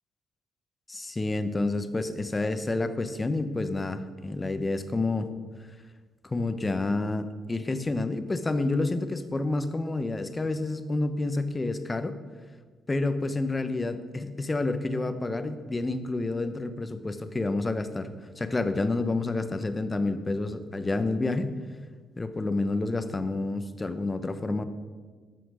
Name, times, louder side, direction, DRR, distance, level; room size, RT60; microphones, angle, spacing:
voice 1, 0.9-5.3 6.2-12.2 12.9-18.1 18.4-21.5 22.2-24.6, left 2 dB, 20° left, 10 dB, 1.0 m, -29 dB
13.5 x 5.9 x 6.3 m, 1.5 s
cardioid pair, 90°, 0 cm